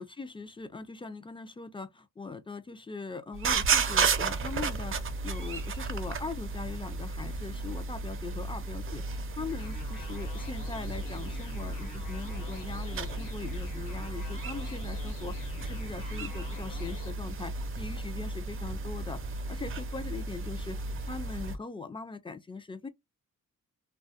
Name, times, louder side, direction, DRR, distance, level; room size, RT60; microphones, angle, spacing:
voice 1, 0.0-5.0 5.2-19.2 19.5-20.8 21.1-22.9, left 4 dB, 15° left, 0.3 m, -41 dB
sound 1, 3.3-21.6, right 4 dB, 40° right, 0.5 m, -33 dB
sound 2, 9.5-17.1, left 4 dB, 80° left, 1.0 m, -47 dB
2.3 x 2.2 x 2.7 m
cardioid pair, 85°, 32 cm